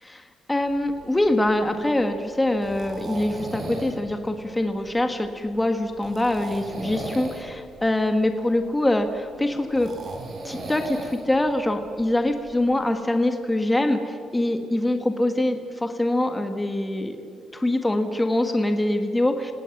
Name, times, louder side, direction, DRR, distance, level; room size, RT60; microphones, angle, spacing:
voice 1, 0.0-9.9 10.4-17.2 17.5-19.5, left 1 dB, 15° left, 6 dB, 1.6 m, -24 dB
sound 1, 0.6-12.8, right 2 dB, 55° right, 5.1 m, -38 dB
28.5 x 17.5 x 6.1 m, 2.5 s
cardioid pair, 90°, 0 cm